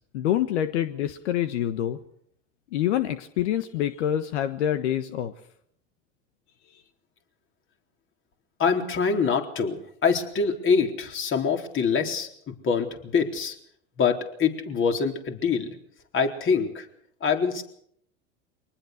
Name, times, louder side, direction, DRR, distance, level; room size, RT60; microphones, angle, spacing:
voice 1, 0.0-2.0 2.7-5.3, left 11 dB, 75° left, 10 dB, 1.5 m, -26 dB
voice 2, 8.6-13.5 14.0-15.8 16.1-16.9 17.2-17.6, left 5 dB, 35° left, 4 dB, 3.9 m, -25 dB
24.0 x 19.5 x 6.6 m, 0.70 s
hypercardioid pair, 100°, 35 cm